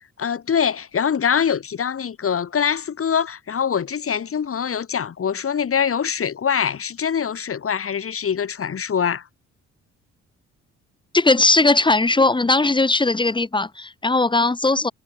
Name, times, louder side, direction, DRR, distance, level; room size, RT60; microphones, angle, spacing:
voice 1, 0.2-9.3, left 7 dB, 45° left, 3.6 m, -23 dB
voice 2, 11.1-14.9, left 3 dB, 15° left, 1.5 m, -18 dB
cardioid pair, 90°, 30 cm